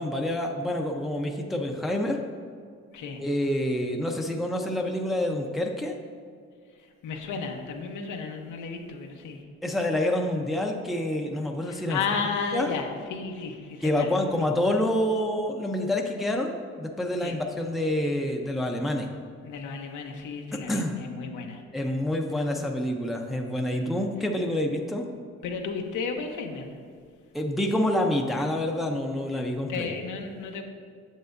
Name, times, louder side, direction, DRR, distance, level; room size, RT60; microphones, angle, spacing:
voice 1, 0.0-2.2 3.2-6.0 9.6-12.0 12.5-12.7 13.8-19.1 20.7-20.9 21.7-25.1 27.3-29.9, left 1 dB, ahead, 1 dB, 0.6 m, -27 dB
voice 2, 2.9-3.2 6.8-9.4 11.6-14.1 17.2-17.4 19.4-21.6 23.7-23.9 25.4-26.7 29.7-30.6, left 5 dB, 80° left, 3 dB, 0.9 m, -33 dB
8.2 x 6.7 x 2.6 m, 2.2 s
cardioid pair, 90°, 30 cm